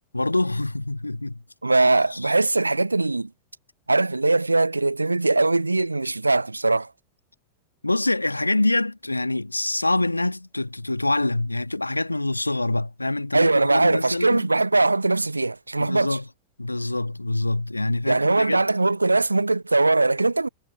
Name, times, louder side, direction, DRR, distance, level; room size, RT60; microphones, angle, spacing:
voice 1, 0.1-1.4 2.1-2.3 7.8-14.5 15.8-16.3 16.6-18.6, left 2 dB, 85° left, 2.0 m, -25 dB
voice 2, 1.6-3.3 3.9-6.9 13.3-16.2 18.1-20.5, right 2 dB, 80° right, 0.6 m, -21 dB
figure-of-eight pair, 90°, 0 cm